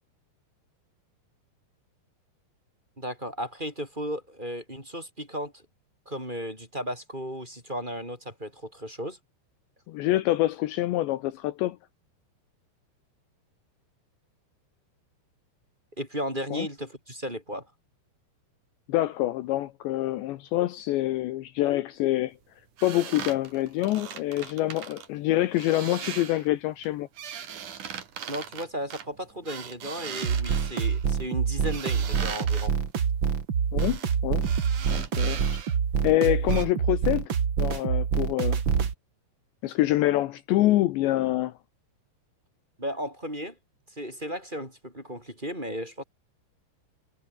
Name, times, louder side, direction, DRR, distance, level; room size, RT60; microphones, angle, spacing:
voice 1, 3.0-5.6 6.0-9.2 16.0-17.7 28.3-32.7 42.8-43.6 43.9-46.0, equal, 10° right, 6.5 m, -35 dB
voice 2, 9.9-11.8 16.5-16.7 18.9-22.3 22.8-27.1 33.7-34.5 34.9-35.5 36.0-37.3 37.6-38.6 39.6-41.5, left 15 dB, 75° left, 3.1 m, -26 dB
sound 1, 22.8-25.1 25.5-26.5 26.8-31.1 31.7-32.7 33.8-34.2 34.4-35.8 36.1-36.2 36.5-36.7, right 8 dB, 50° right, 3.2 m, -39 dB
sound 2, 30.2-38.9, right 7 dB, 75° right, 1.1 m, -26 dB
omnidirectional pair, 5.6 m